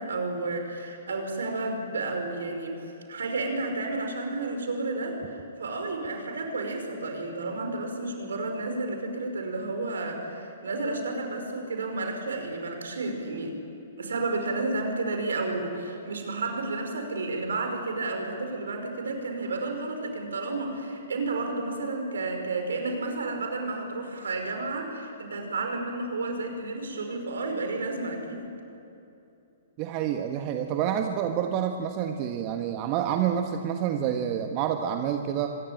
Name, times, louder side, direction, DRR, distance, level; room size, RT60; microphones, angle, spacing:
voice 1, 0.0-13.6 14.0-28.5, right 2 dB, 75° right, 4 dB, 5.3 m, -31 dB
voice 2, 29.8-35.6, right 9 dB, 35° right, 5 dB, 1.4 m, -28 dB
25.5 x 21.5 x 8.9 m, 2.8 s
figure-of-eight pair, 120°, 0 cm